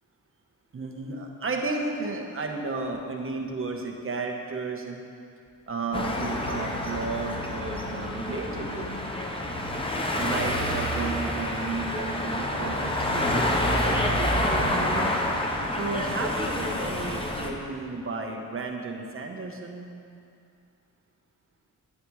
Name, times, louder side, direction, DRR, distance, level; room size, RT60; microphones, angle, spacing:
voice 1, 0.7-5.0 5.7-8.9 10.1-15.1 15.7-19.8, right 3 dB, 40° right, 2 dB, 1.0 m, -33 dB
sound 1, 5.9-17.5, left 1 dB, 15° left, 0.8 m, -28 dB
9.8 x 9.1 x 3.1 m, 2.4 s
wide cardioid pair, 115°, 33 cm